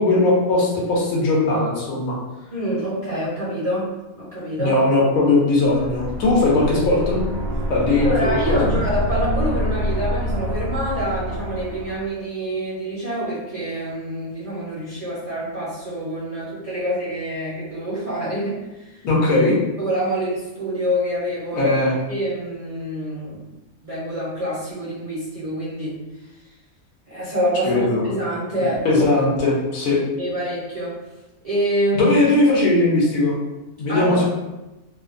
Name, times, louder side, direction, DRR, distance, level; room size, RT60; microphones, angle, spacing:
voice 1, 0.0-2.2 4.6-7.2 7.7-8.7 19.0-19.6 21.5-21.9 27.6-28.0 28.8-30.0 32.0-33.3 33.8-34.3, left 2 dB, 75° left, -3 dB, 1.1 m, -19 dB
voice 2, 2.5-3.9 4.2-4.7 7.9-18.6 18.9-19.0 19.8-21.6 22.1-23.4 23.8-26.0 27.1-29.0 30.2-30.9 31.4-32.3 33.9-34.2, equal, 35° right, -10 dB, 0.6 m, -26 dB
sound 1, 5.7-12.1, equal, 70° right, 0.3 m, -26 dB
2.7 x 2.1 x 2.4 m, 1.0 s
omnidirectional pair, 1.5 m